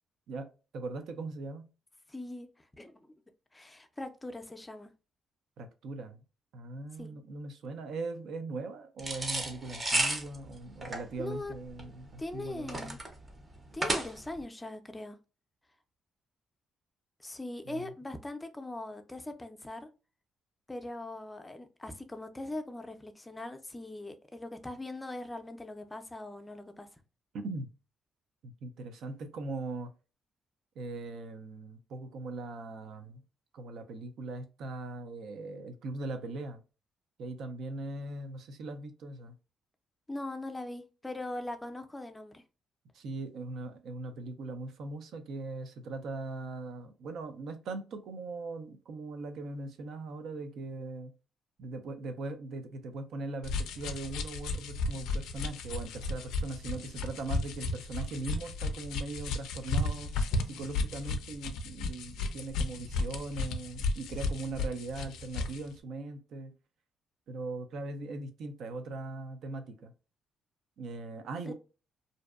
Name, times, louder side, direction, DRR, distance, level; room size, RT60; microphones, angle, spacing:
voice 1, 0.3-1.6 5.6-6.2 6.5-13.0 17.7-17.9 27.3-27.7 28.4-29.9 30.8-33.2 33.5-36.6 37.2-39.3 42.9-51.1 51.6-60.1 60.5-66.5 67.3-69.9 70.8-71.5, right 3 dB, 75° right, 0.5 m, -40 dB
voice 2, 2.1-2.5 2.8-3.1 3.5-4.9 7.0-7.1 11.2-11.5 12.2-13.0 13.7-15.2 17.2-19.9 20.7-27.0 40.1-42.4 71.5-71.6, left 2 dB, 15° left, 0.4 m, -41 dB
sound 1, 9.0-14.4, right 2 dB, 25° right, 0.6 m, -33 dB
sound 2, 53.4-65.6, left 3 dB, 90° left, 0.3 m, -34 dB
2.6 x 2.1 x 2.3 m
cardioid pair, 90°, 0 cm